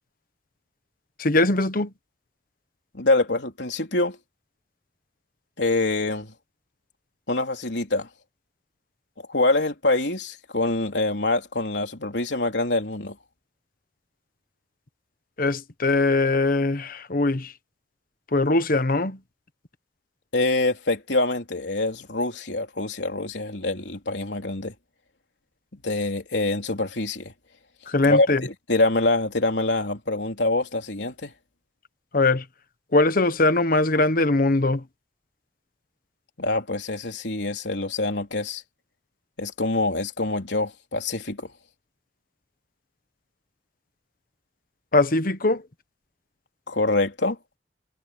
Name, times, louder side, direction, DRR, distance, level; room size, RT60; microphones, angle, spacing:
voice 1, 1.2-1.9 15.4-17.5 18.3-19.2 27.9-28.4 32.1-32.4 32.9-34.8 44.9-45.6, left 2 dB, 55° left, 1.2 m, -21 dB
voice 2, 2.9-4.2 5.6-6.3 7.3-8.1 9.3-13.2 20.3-24.7 25.7-27.3 28.0-31.3 36.4-38.6 39.4-41.5 46.7-47.4, left 2 dB, 85° left, 3.5 m, -25 dB
head